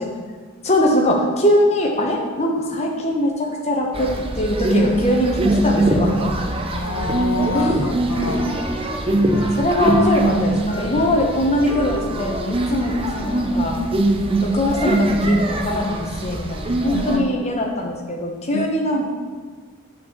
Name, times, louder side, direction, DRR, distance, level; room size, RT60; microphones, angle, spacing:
voice 1, 0.6-6.4 7.5-8.0 9.3-13.8 14.4-19.1, left 1 dB, 30° left, 0 dB, 1.1 m, -22 dB
sound 1, 3.9-17.2, right 1 dB, 25° right, 0.6 m, -22 dB
voice 2, 6.7-8.5 16.9-17.2 18.5-18.7, left 3 dB, 85° left, 5 dB, 0.7 m, -27 dB
Wind instrument woodwind instrument, 7.8-14.7, right 1 dB, 5° right, 1.2 m, -36 dB
7.6 x 4.6 x 6.8 m, 1.5 s
head